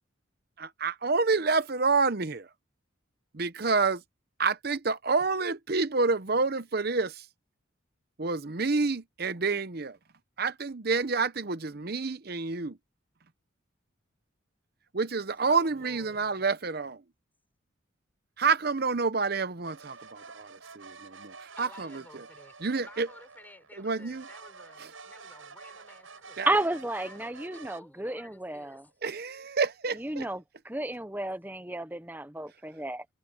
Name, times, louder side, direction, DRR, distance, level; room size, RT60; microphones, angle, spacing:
voice 1, 0.6-2.5 3.3-4.0 4.4-7.3 8.2-10.0 10.4-12.8 14.9-17.0 18.4-22.2 22.6-23.1 23.8-24.3 24.8-24.9 26.4-26.5 29.0-30.3, right 4 dB, 50° right, 0.8 m, -28 dB
voice 2, 15.5-16.3 21.6-26.4 26.7-28.9, left 1 dB, 10° left, 6.6 m, -53 dB
sound 1, 19.6-23.7 24.1-27.8, right 4 dB, 85° right, 8.0 m, -49 dB
voice 3, 26.5-28.8 30.0-33.0, right 2 dB, 10° right, 1.0 m, -32 dB
head